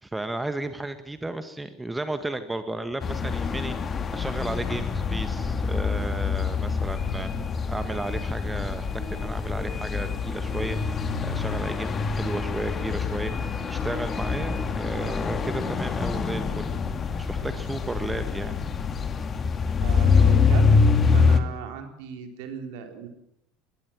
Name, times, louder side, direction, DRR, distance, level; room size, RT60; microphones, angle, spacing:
voice 1, 0.0-16.7 17.2-18.5, right 2 dB, 10° right, 11 dB, 1.6 m, -34 dB
sound 1, 3.0-21.4, left 5 dB, 30° left, 2.4 m, -25 dB
sound 2, 9.0-16.8, right 2 dB, 25° right, 4.5 m, -44 dB
voice 2, 19.8-20.6 21.1-23.1, right 8 dB, 60° right, 5 dB, 4.0 m, -38 dB
21.5 x 21.5 x 7.5 m, 0.79 s
figure-of-eight pair, 65°, 0 cm